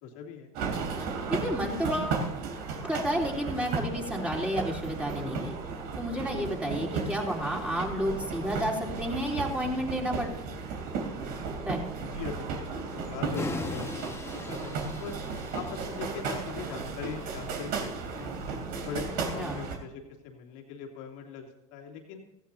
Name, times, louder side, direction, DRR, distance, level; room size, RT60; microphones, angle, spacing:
voice 1, 0.0-0.5 12.0-15.1 15.5-18.3 18.8-22.2, left 6 dB, 70° left, 1 dB, 2.9 m, -41 dB
sound 1, 0.5-19.7, right 4 dB, 65° right, 3.2 m, -35 dB
voice 2, 1.3-2.2 2.8-5.6 5.9-10.3 11.7-11.8 19.4-19.6, equal, 5° right, 0 dB, 3.6 m, -31 dB
sound 2, 13.4-18.5, left 3 dB, 15° left, 1.5 m, -40 dB
16.5 x 15.0 x 2.8 m, 0.96 s
supercardioid pair, 95°, 18 cm